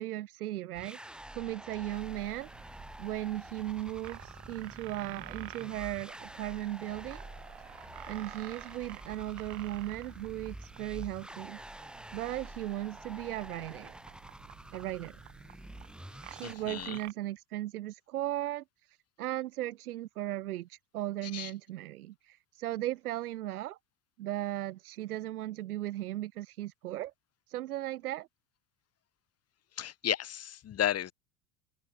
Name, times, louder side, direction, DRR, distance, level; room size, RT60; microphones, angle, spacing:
voice 1, 0.0-7.2 7.6-11.6 12.1-14.0 14.7-15.2 16.3-23.8 24.2-27.1 27.5-28.3, right 14 dB, 80° right, 0.8 m, -37 dB
sound 1, 0.7-16.5, right 1 dB, ahead, 0.7 m, -48 dB
sound 2, 1.9-17.1, right 35 dB, 60° right, 4.4 m, -52 dB
voice 2, 16.4-17.0 21.2-21.5 29.8-31.1, left 11 dB, 35° left, 1.5 m, -33 dB
open air
hypercardioid pair, 70°, 44 cm